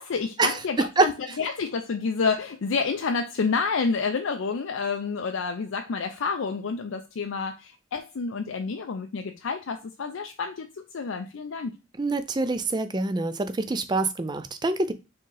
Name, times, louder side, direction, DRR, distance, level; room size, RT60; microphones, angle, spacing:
voice 1, 0.0-11.8, left 5 dB, 65° left, 5 dB, 0.5 m, -29 dB
voice 2, 12.0-14.9, right 3 dB, 20° right, 12 dB, 0.4 m, -25 dB
4.4 x 3.7 x 3.3 m, 0.29 s
head